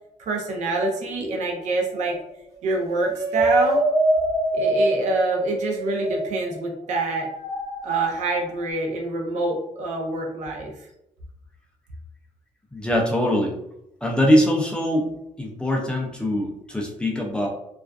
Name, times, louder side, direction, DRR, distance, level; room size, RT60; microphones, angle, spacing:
voice 1, 0.2-2.2 2.6-3.8 4.5-7.3 7.8-10.7, right 2 dB, 70° right, 1 dB, 0.6 m, -26 dB
sound 1, 1.6-2.2 2.6-6.7 7.2-8.6, right 1 dB, 25° right, 1.1 m, -24 dB
voice 2, 12.7-13.5 14.0-15.1 15.4-17.5, equal, 5° left, -1 dB, 0.3 m, -22 dB
2.4 x 2.3 x 2.2 m, 0.81 s
cardioid pair, 155°, 13 cm